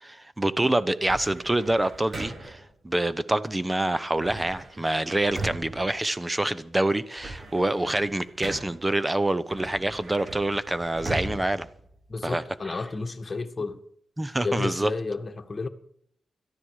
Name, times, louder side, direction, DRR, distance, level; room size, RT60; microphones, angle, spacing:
voice 1, 0.0-11.7 12.2-12.8 14.2-14.9, right 1 dB, 20° right, 0.8 m, -26 dB
sound 1, 1.1-2.7 4.2-6.6 7.0-8.9 9.5-12.5, right 2 dB, 45° right, 3.7 m, -39 dB
voice 2, 12.1-13.8 14.4-15.7, left 3 dB, 35° left, 1.6 m, -31 dB
17.5 x 13.0 x 4.9 m
cardioid pair, 75°, 0 cm